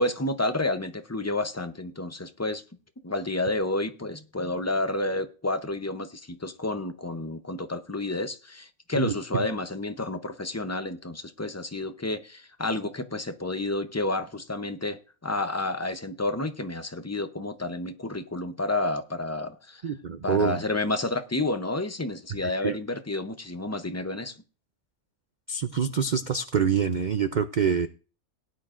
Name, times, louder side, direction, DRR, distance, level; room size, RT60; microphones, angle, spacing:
voice 1, 0.0-2.6 3.0-19.8 20.2-24.4, left 2 dB, 25° left, 0.3 m, -30 dB
voice 2, 9.0-9.5 19.8-20.6 22.6-22.8 25.5-27.9, right 7 dB, 80° right, 0.4 m, -26 dB
18.0 x 9.4 x 2.5 m
omnidirectional pair, 1.5 m